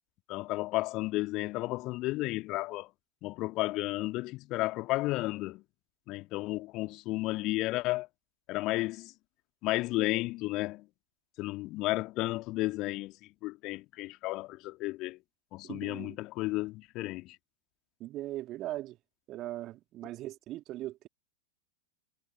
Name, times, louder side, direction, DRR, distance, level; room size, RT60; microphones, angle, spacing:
voice 1, 0.3-2.9 3.2-5.6 6.1-8.1 8.5-9.1 9.6-10.8 11.4-13.1 13.4-15.2 15.5-17.4, left 19 dB, 40° left, 2.3 m, -33 dB
voice 2, 15.6-16.2 18.0-19.0 19.3-21.1, right 15 dB, 35° right, 2.7 m, -39 dB
figure-of-eight pair, 90°, 0 cm